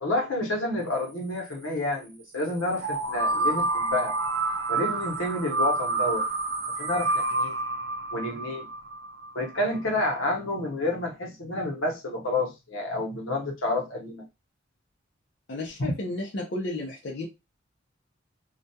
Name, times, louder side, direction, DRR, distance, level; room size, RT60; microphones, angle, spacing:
voice 1, 0.0-4.2 4.7-6.3 6.8-7.5 8.1-8.7 9.3-14.2 15.8-15.9, left 1 dB, 85° left, 0.9 m, -29 dB
sound 1, 2.8-9.6, right 2 dB, 55° right, 0.4 m, -28 dB
voice 2, 15.5-17.3, left 2 dB, 60° left, 0.5 m, -33 dB
2.3 x 2.2 x 2.7 m
head